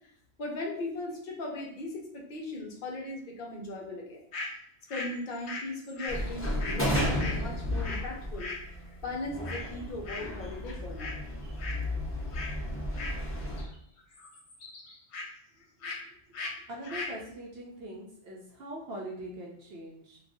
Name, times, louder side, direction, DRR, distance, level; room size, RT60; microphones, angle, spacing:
voice 1, 0.4-4.2 4.9-8.6 9.0-11.2, left 2 dB, 55° left, 0 dB, 0.8 m, -38 dB
sound 1, 4.3-4.5 4.9-8.1 8.4-8.6 9.4-9.7 10.0-10.4 10.6-11.2 11.4-11.8 12.3-12.5 12.9-13.7 14.0-15.3 15.8-16.0 16.3-16.5 16.8-17.2, left 3 dB, 80° left, 1.0 m, -39 dB
sound 2, 6.1-13.6, left 1 dB, 15° left, 0.5 m, -33 dB
voice 2, 16.4-20.2, right 1 dB, 65° right, -3 dB, 0.8 m, -42 dB
2.5 x 2.4 x 3.4 m, 0.68 s
omnidirectional pair, 1.1 m